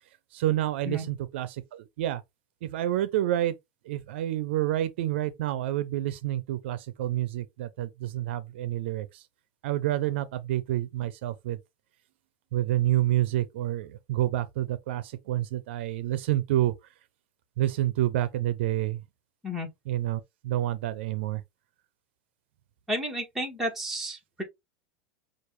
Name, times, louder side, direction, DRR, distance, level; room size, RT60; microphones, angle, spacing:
voice 1, 0.3-2.2 2.6-3.5 3.8-9.2 9.6-11.6 12.5-16.7 17.6-19.0 19.9-21.4, right 14 dB, 75° right, 0.6 m, -28 dB
voice 2, 22.9-24.4, equal, 5° right, 1.7 m, -32 dB
6.0 x 2.5 x 3.2 m
supercardioid pair, 130°, 6 cm